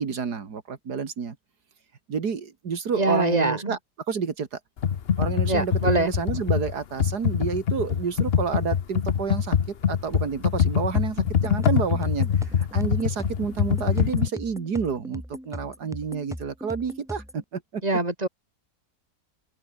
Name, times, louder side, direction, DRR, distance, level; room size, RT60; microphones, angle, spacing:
voice 1, 0.0-1.4 2.1-3.8 4.1-4.6 5.2-17.8, right 6 dB, 90° right, 2.6 m, -29 dB
voice 2, 2.9-3.8 5.5-6.1 17.8-18.3, right 2 dB, 25° right, 3.7 m, -24 dB
Computer keyboard, 4.8-14.3, left 8 dB, 45° left, 1.0 m, -24 dB
sound 1, 11.2-17.4, equal, ahead, 7.4 m, -39 dB
open air
omnidirectional pair, 1.7 m